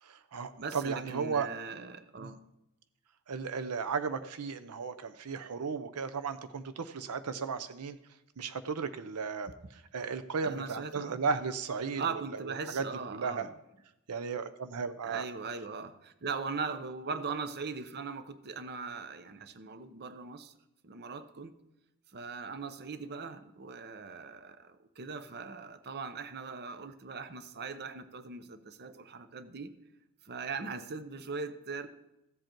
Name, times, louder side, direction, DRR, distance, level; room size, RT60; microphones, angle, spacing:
voice 1, 0.0-1.5 2.2-2.3 3.3-8.0 8.4-12.8 13.1-13.5 14.1-15.3, right 5 dB, 90° right, 12 dB, 0.6 m, -35 dB
voice 2, 0.6-2.4 10.4-11.2 12.0-13.5 15.0-20.5 20.8-21.5 22.1-29.7 30.2-31.9, right 4 dB, 45° right, 11 dB, 0.7 m, -40 dB
15.0 x 7.7 x 4.5 m, 0.89 s
head